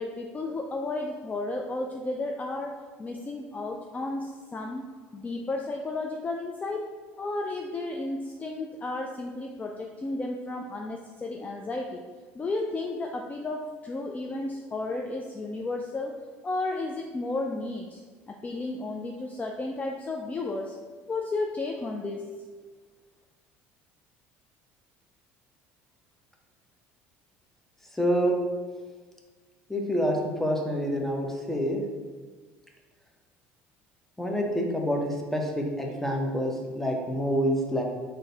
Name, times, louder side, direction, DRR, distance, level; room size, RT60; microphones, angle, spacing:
voice 1, 0.0-2.7 3.0-4.9 5.1-6.8 7.2-12.0 12.3-16.1 16.4-18.0 18.4-20.8 21.1-22.2, left 2 dB, 25° left, 1 dB, 0.4 m, -33 dB
voice 2, 27.9-28.3 29.7-31.8 34.2-37.8, equal, 5° left, 1 dB, 0.8 m, -27 dB
3.8 x 2.6 x 3.9 m, 1.4 s
hypercardioid pair, 75°, 6 cm